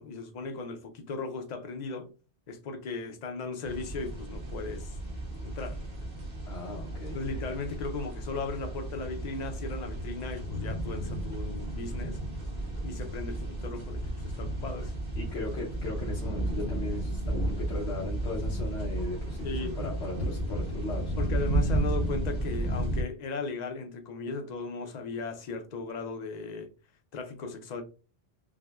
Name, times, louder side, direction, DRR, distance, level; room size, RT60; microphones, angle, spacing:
voice 1, 0.0-2.1 2.5-4.9 5.4-5.8 7.1-12.2 12.8-14.9 19.4-19.8 21.1-26.7 27.1-27.8, left 3 dB, 50° left, 0.6 m, -37 dB
sound 1, 3.7-23.0, right 1 dB, 45° right, 1.2 m, -33 dB
voice 2, 6.5-7.2 15.2-21.1, left 2 dB, 85° left, 1.1 m, -38 dB
5.8 x 2.1 x 2.3 m
omnidirectional pair, 1.1 m